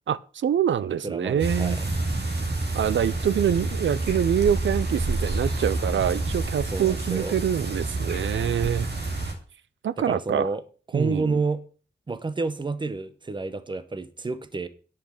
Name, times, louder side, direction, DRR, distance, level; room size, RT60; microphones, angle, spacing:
voice 1, 0.1-1.8 2.7-8.9 9.8-10.5 10.9-11.4, right 9 dB, 85° right, 0.5 m, -25 dB
voice 2, 1.0-1.9 6.7-7.4 10.0-10.6 10.9-11.6 12.1-14.7, right 3 dB, 25° right, 0.8 m, -29 dB
sound 1, 1.4-9.3, right 2 dB, 60° right, 2.4 m, -28 dB
10.5 x 5.9 x 6.4 m
wide cardioid pair, 170°, 19 cm